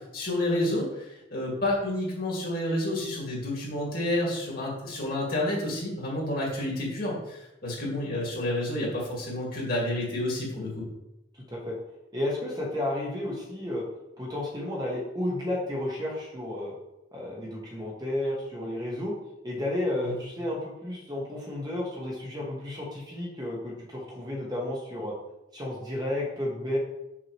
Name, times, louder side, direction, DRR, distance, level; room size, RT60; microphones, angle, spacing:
voice 1, 0.1-10.9 20.0-20.2, left 1 dB, 50° left, -4 dB, 2.2 m, -30 dB
voice 2, 11.3-11.7 12.1-13.8 14.2-16.7 17.1-19.1 19.4-25.1 25.5-26.8, left 1 dB, 20° right, -3 dB, 1.3 m, -32 dB
6.2 x 5.9 x 3.1 m, 0.89 s
head